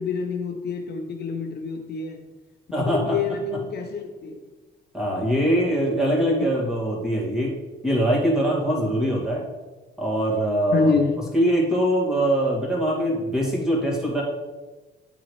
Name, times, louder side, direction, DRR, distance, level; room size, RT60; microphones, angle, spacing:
voice 1, 0.0-2.2 2.8-4.4 10.7-11.2, left 5 dB, 55° left, 5 dB, 0.6 m, -26 dB
voice 2, 2.7-3.2 4.9-7.6 7.8-9.4 10.0-10.9 11.3-14.2, right 1 dB, 5° right, -4 dB, 2.0 m, -22 dB
9.6 x 3.8 x 3.2 m, 1.2 s
cardioid pair, 90°, 20 cm